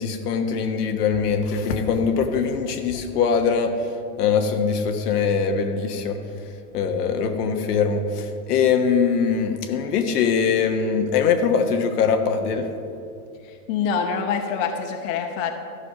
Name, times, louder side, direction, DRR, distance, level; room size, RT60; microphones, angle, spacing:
voice 1, 0.0-3.7 4.2-6.2 6.7-12.6, left 6 dB, 75° left, 5 dB, 1.2 m, -22 dB
voice 2, 13.7-15.5, left 6 dB, 55° left, 4 dB, 1.0 m, -25 dB
13.0 x 5.5 x 5.6 m, 2.5 s
hypercardioid pair, 125°, 47 cm